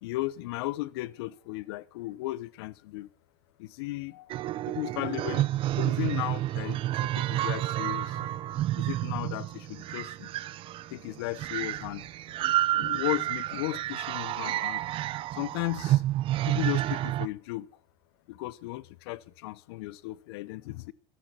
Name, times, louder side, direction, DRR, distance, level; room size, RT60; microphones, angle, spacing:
voice 1, 0.0-3.1 3.6-4.3 4.7-5.5 5.8-8.3 8.8-10.3 10.9-12.1 12.7-14.8 15.3-16.0 16.5-17.7 18.3-20.9, left 18 dB, 80° left, 0.9 m, -35 dB
sound 1, 4.3-17.3, right 14 dB, 45° right, 0.6 m, -30 dB
14.0 x 13.5 x 6.1 m
supercardioid pair, 120°, 13 cm